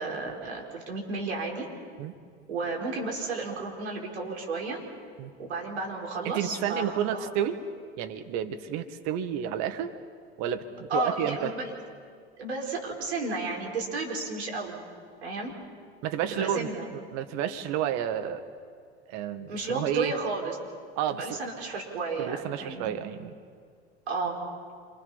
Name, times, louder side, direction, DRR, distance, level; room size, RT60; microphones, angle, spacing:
voice 1, 0.0-1.7 2.5-4.8 5.4-7.3 10.9-11.7 12.4-14.8 15.2-15.5 16.3-16.9 19.5-20.6 21.2-22.9 24.1-24.4, right 3 dB, 80° right, 0 dB, 5.1 m, -32 dB
voice 2, 6.3-7.6 8.0-9.9 10.4-11.5 16.0-18.4 19.1-20.1 21.0-21.4 22.2-23.3, right 9 dB, 55° right, 8 dB, 1.9 m, -31 dB
28.0 x 25.5 x 5.8 m, 2.1 s
hypercardioid pair, 80°, 32 cm